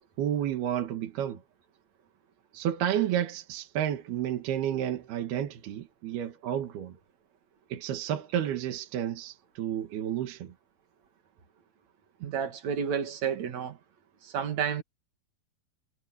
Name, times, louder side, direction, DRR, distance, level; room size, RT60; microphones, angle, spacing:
voice 1, 0.2-1.4 2.5-6.9 7.7-10.5, right 10 dB, 70° right, 3.6 m, -31 dB
voice 2, 12.2-13.8 14.2-14.8, right 7 dB, 50° right, 2.7 m, -31 dB
omnidirectional pair, 4.7 m